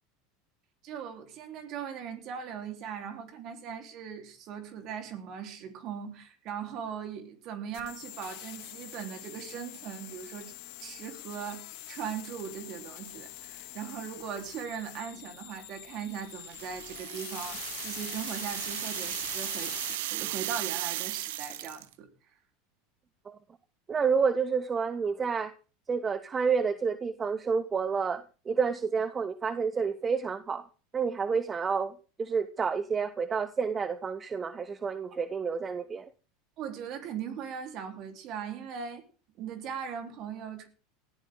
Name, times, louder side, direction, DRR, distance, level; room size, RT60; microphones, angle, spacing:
voice 1, 0.8-10.5 10.8-22.1 36.6-39.0 39.4-40.7, right 7 dB, 50° right, 5 dB, 4.1 m, -39 dB
sound 1, 7.7-19.9, left 15 dB, 65° left, 2.6 m, -44 dB
sound 2, 16.4-21.9, right 15 dB, 75° right, 1.0 m, -36 dB
voice 2, 23.9-25.5 25.9-30.6 30.9-36.0, right 5 dB, 25° right, 13 dB, 0.9 m, -29 dB
19.0 x 14.0 x 3.9 m, 0.36 s
hypercardioid pair, 95°, 0 cm